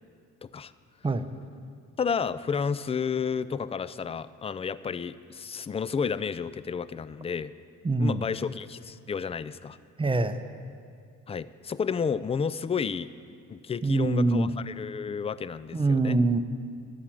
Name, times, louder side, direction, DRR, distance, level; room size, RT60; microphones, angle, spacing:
voice 1, 0.4-0.7 2.0-7.5 8.0-9.8 11.3-13.1 13.5-16.2, left 6 dB, 20° left, 16 dB, 0.3 m, -31 dB
voice 2, 7.8-8.2 10.0-10.4 13.8-14.5 15.7-16.4, right 3 dB, 15° right, 10 dB, 0.7 m, -24 dB
11.0 x 8.4 x 7.6 m, 2.3 s
cardioid pair, 90°, 30 cm